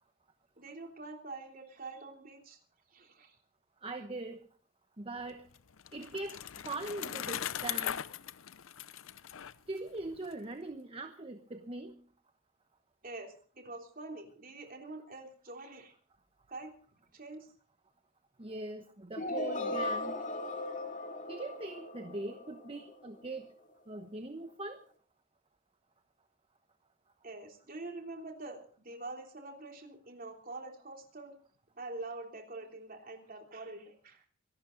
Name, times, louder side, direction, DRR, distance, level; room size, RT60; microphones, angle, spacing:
voice 1, 0.6-2.6 2.9-3.4 13.0-15.9 16.5-16.7 17.1-17.5 27.2-31.4 31.8-34.2, right 2 dB, 45° right, 3 dB, 3.3 m, -45 dB
voice 2, 3.8-4.5 5.0-5.5 5.9-6.4 6.6-8.0 9.7-12.0 18.4-20.2 21.3-23.5 23.9-24.8, right 2 dB, 30° right, 7 dB, 1.0 m, -41 dB
Bicycle, 5.3-10.3, left 10 dB, 85° left, 0.6 m, -40 dB
sound 1, 19.2-23.1, left 2 dB, 40° left, 2.6 m, -37 dB
25.0 x 12.0 x 3.9 m, 0.42 s
head